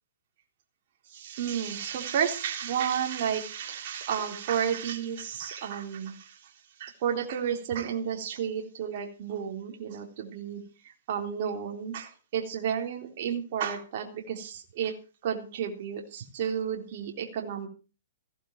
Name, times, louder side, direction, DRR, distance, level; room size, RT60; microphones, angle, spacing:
voice 1, 1.1-6.5 6.8-14.9 15.2-17.7, right 8 dB, 50° right, 2 dB, 3.7 m, -32 dB
16.5 x 11.5 x 4.7 m, 0.35 s
hypercardioid pair, 145°, 0 cm